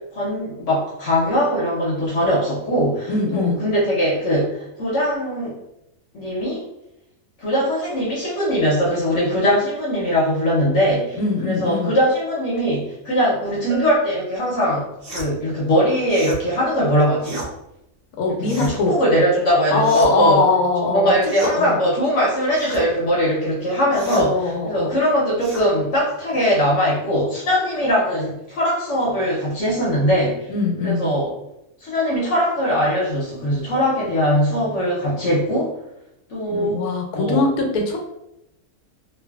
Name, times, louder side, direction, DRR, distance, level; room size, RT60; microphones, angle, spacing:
voice 1, 0.0-5.5 6.1-6.6 7.4-17.4 18.4-20.4 20.9-30.5 30.8-31.3 31.8-35.7 36.3-36.8 37.1-37.4, equal, 60° left, -5 dB, 1.0 m, -21 dB
voice 2, 3.1-3.6 11.1-11.9 18.2-18.9 19.7-21.2 21.4-21.8 24.1-25.0 30.5-31.1 36.5-38.0, left 3 dB, 85° left, 2 dB, 1.1 m, -21 dB
Bell, 13.7-15.3, right 1 dB, 80° right, 1.0 m, -35 dB
sound 1, 15.0-15.3 16.1-16.4 17.2-17.5 18.4-18.8 19.8-20.3 21.2-21.6 22.5-22.8 23.9-24.3 25.4-25.7, right 1 dB, 55° right, 0.7 m, -34 dB
2.8 x 2.5 x 2.2 m, 0.85 s
omnidirectional pair, 1.5 m